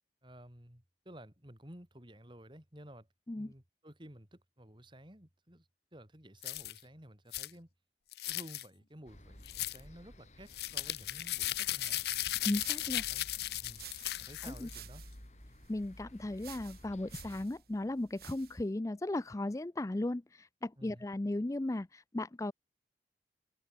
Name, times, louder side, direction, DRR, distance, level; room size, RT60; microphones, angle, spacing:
voice 1, 0.2-3.1 3.4-7.7 8.3-12.1 12.8-13.3 13.6-13.8 14.2-15.0 20.8-21.0, right 1 dB, 25° right, 4.0 m, -53 dB
sound 1, 6.4-6.8 7.3-7.5 8.1-8.6 9.5-9.8 10.5-14.8, left 15 dB, 60° left, 0.6 m, -36 dB
sound 2, 9.1-17.5, left 1 dB, 40° left, 3.6 m, -55 dB
sound 3, 11.5-18.7, right 10 dB, 60° right, 4.5 m, -55 dB
voice 2, 12.4-13.0 14.4-14.7 15.7-22.5, left 1 dB, 20° left, 0.4 m, -36 dB
head